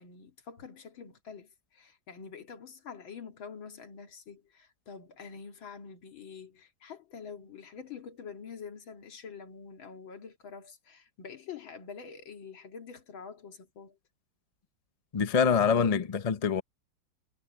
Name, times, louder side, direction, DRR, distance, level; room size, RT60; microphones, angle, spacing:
voice 1, 0.0-14.0, left 6 dB, 85° left, 2.9 m, -46 dB
voice 2, 15.1-16.6, left 6 dB, 45° left, 0.4 m, -25 dB
omnidirectional pair, 2.1 m